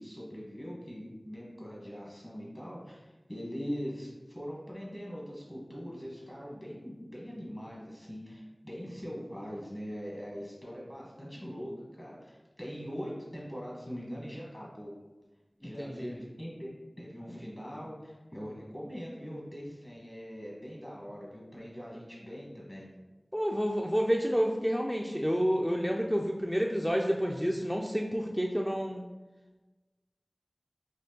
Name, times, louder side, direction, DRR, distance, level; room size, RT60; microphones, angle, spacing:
voice 1, 0.0-4.1 4.3-11.7 12.0-14.9 15.6-16.7 17.0-22.9, equal, 30° left, -4 dB, 1.1 m, -42 dB
voice 2, 15.8-16.2 23.3-29.0, equal, ahead, 0 dB, 0.3 m, -29 dB
4.2 x 2.8 x 2.8 m, 1.2 s
wide cardioid pair, 50°, 0 cm